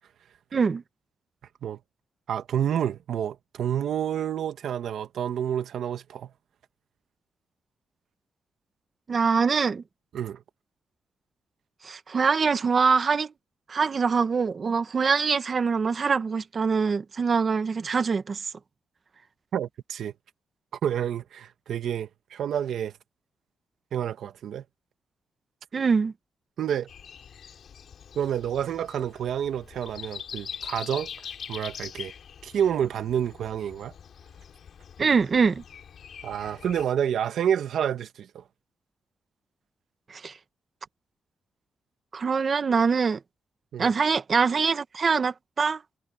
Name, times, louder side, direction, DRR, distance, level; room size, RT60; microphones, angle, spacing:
voice 1, 0.5-0.8 9.1-9.8 11.8-13.3 13.7-18.4 25.7-26.1 35.0-35.6 40.1-40.3 42.1-43.2 43.8-45.8, right 5 dB, 35° right, 1.0 m, -24 dB
voice 2, 2.3-6.3 10.1-10.4 19.5-20.1 20.8-22.9 23.9-24.6 26.6-26.9 28.1-31.1 31.5-32.1 32.4-33.9 36.2-38.4 43.7-43.9, right 9 dB, 70° right, 1.7 m, -29 dB
Breathing, 26.9-36.8, left 7 dB, 55° left, 3.0 m, -43 dB
wide cardioid pair, 165°, 0 cm